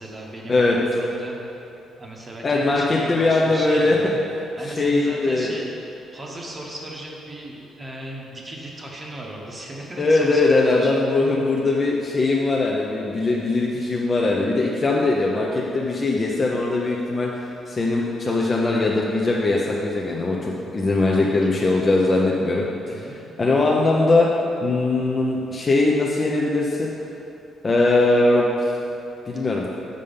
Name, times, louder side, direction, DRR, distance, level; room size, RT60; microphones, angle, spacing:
voice 1, 0.0-1.7 2.0-4.1 4.6-5.7 6.1-11.0 21.1-21.7 22.9-23.2 29.3-29.5, right 1 dB, 20° right, -2 dB, 0.9 m, -36 dB
voice 2, 2.4-4.0 4.6-5.5 10.0-22.7 22.9-23.1 23.4-24.3 24.6-26.9 27.6-28.7 29.3-29.7, left 2 dB, 25° left, -2 dB, 0.6 m, -20 dB
6.6 x 5.2 x 5.4 m, 2.8 s
cardioid pair, 140°, 0 cm